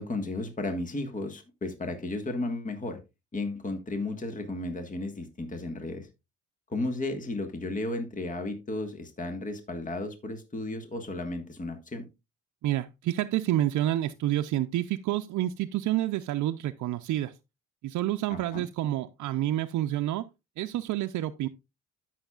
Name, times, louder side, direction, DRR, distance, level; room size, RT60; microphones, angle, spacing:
voice 1, 0.0-3.0 3.3-6.1 6.7-12.0 18.3-18.6, left 2 dB, 25° left, 1.5 m, -34 dB
voice 2, 12.6-17.3 17.8-20.2 20.6-21.5, right 13 dB, 75° right, 0.5 m, -28 dB
12.5 x 6.3 x 2.4 m
cardioid pair, 90°, 30 cm